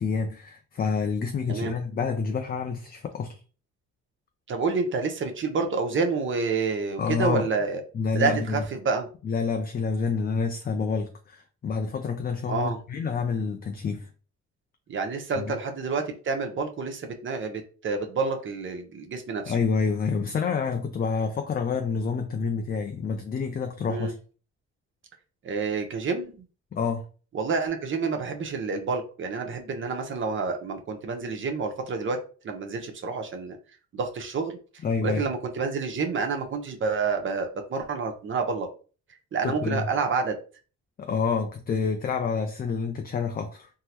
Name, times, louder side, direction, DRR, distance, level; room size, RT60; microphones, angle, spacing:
voice 1, 0.0-3.4 7.0-7.5 7.9-8.6 9.2-14.1 15.4-15.5 19.5-24.2 26.7-27.0 34.8-35.2 39.4-39.9 41.0-43.7, left 5 dB, 30° left, 0.4 m, -28 dB
voice 2, 4.5-7.8 8.1-9.1 12.5-12.8 14.9-19.5 23.9-24.1 25.4-26.3 27.3-32.2 32.4-33.6 33.9-34.6 35.0-38.7 39.3-40.4, right 4 dB, 40° right, 0.7 m, -28 dB
3.6 x 2.0 x 2.9 m
cardioid pair, 90°, 30 cm